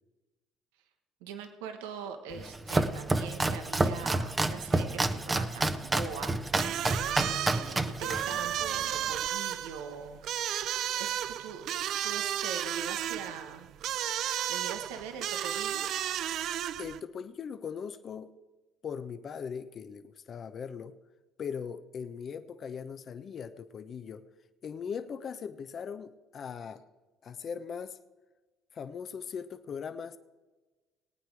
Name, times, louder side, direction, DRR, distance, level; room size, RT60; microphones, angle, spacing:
voice 1, 1.2-6.4 7.2-10.2 11.0-11.7 12.0-13.7 14.5-15.9, right 6 dB, 85° right, 7 dB, 1.2 m, -42 dB
Domestic sounds home sounds, 2.3-9.3, right 2 dB, 20° right, 1.0 m, -30 dB
sound 1, 6.5-17.0, right 11 dB, 65° right, 0.5 m, -33 dB
voice 2, 16.8-18.3 18.8-20.9 21.4-24.2 24.6-26.8 27.2-28.0 28.7-30.2, left 6 dB, 50° left, 10 dB, 0.9 m, -39 dB
19.5 x 9.0 x 4.8 m, 1.2 s
supercardioid pair, 70°, 0 cm